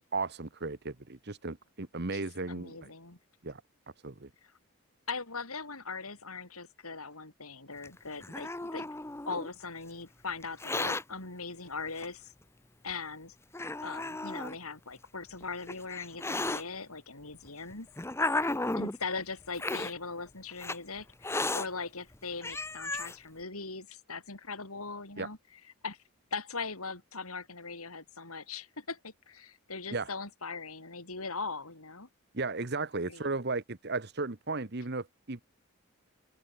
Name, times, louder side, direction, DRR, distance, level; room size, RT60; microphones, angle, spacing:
voice 1, 0.0-2.9 3.4-3.6 4.0-4.3 25.2-25.3 29.9-30.1 32.3-35.4, right 3 dB, 50° right, 1.2 m, -35 dB
voice 2, 2.1-3.2 4.4-4.5 5.1-8.9 9.3-12.3 12.8-13.4 13.8-17.9 18.8-25.4 25.8-26.0 26.3-32.1 33.0-33.3, left 4 dB, 90° left, 6.1 m, -40 dB
Hiss, 7.8-9.5 10.4-11.0 12.0-12.1 12.9-13.0 13.5-14.5 15.4-16.6 17.5-19.0 19.5-19.9 20.6-20.8 21.2-21.7 22.1-22.2 22.4-23.1, left 2 dB, 10° left, 0.8 m, -34 dB
head